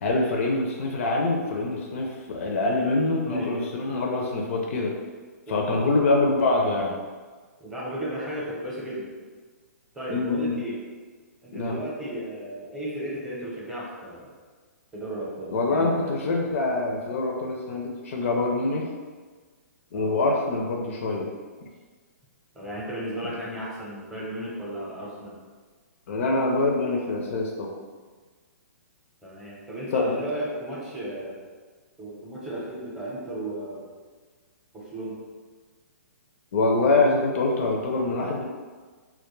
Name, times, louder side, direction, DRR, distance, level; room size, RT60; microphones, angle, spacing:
voice 1, 0.0-5.0 5.5-7.0 10.1-10.6 11.5-11.8 15.5-18.9 19.9-21.3 26.1-27.8 29.9-30.2 36.5-38.4, left 2 dB, 55° left, 0 dB, 0.4 m, -25 dB
voice 2, 7.6-9.1 9.9-10.8 11.4-14.3 14.9-16.1 19.9-20.2 22.5-25.4 29.2-31.4 32.0-33.9 34.7-35.2, right 1 dB, 5° right, -7 dB, 0.6 m, -34 dB
2.2 x 2.1 x 3.0 m, 1.4 s
hypercardioid pair, 140°, 9 cm